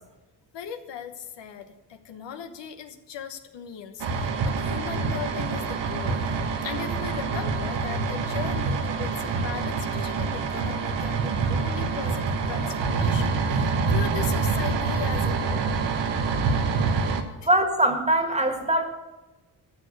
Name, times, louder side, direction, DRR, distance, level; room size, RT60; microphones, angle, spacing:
voice 1, 0.5-6.2 6.6-15.7, left 8 dB, 85° left, 7 dB, 1.1 m, -38 dB
sound 1, 4.0-17.2, right 4 dB, 85° right, 1.3 m, -26 dB
voice 2, 17.4-18.9, right 1 dB, 15° right, 5 dB, 1.7 m, -22 dB
12.5 x 6.6 x 6.6 m, 1.1 s
cardioid pair, 105°, 42 cm